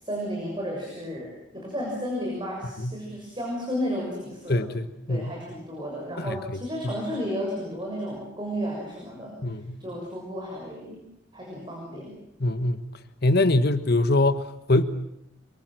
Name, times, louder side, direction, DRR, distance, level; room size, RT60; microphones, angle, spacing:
voice 1, 0.0-4.7 5.1-9.4 9.8-11.0 11.3-12.2, equal, 25° right, -1 dB, 6.7 m, -33 dB
voice 2, 4.5-5.3 6.2-6.6 9.4-9.8 12.4-12.8 13.2-14.8, left 2 dB, 55° left, 10 dB, 1.4 m, -23 dB
27.5 x 24.5 x 7.7 m, 0.81 s
head